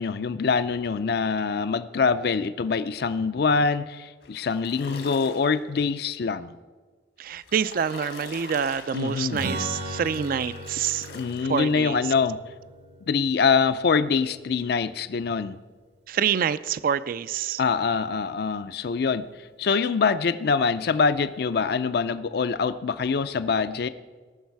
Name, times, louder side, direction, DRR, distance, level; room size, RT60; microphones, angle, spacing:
voice 1, 0.0-6.6 8.9-9.4 11.1-12.4 13.1-15.6 17.6-19.3 19.6-23.9, left 5 dB, 60° left, 13 dB, 0.4 m, -24 dB
sound 1, 4.2-5.6 7.2-12.0, left 4 dB, 80° left, 1.6 m, -44 dB
voice 2, 7.2-11.1 11.4-12.1 16.1-17.6, right 7 dB, 55° right, 16 dB, 0.3 m, -27 dB
Strum, 9.3-15.0, right 1 dB, 80° right, 1.7 m, -38 dB
18.5 x 6.4 x 4.6 m, 1.4 s
head